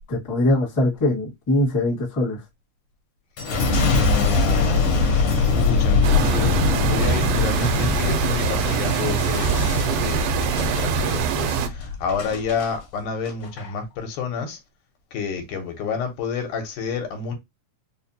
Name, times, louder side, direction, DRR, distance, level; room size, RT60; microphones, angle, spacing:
voice 1, 0.1-2.4, left 1 dB, 10° left, 0.9 m, -22 dB
Boom, 3.4-12.7 13.3-13.7, left 4 dB, 65° left, 1.6 m, -22 dB
voice 2, 3.8-4.9 5.4-14.6 15.1-17.3, left 5 dB, 85° left, 2.3 m, -29 dB
sound 1, 6.0-11.7, right 8 dB, 85° right, 2.1 m, -24 dB
5.0 x 2.1 x 2.7 m
omnidirectional pair, 3.7 m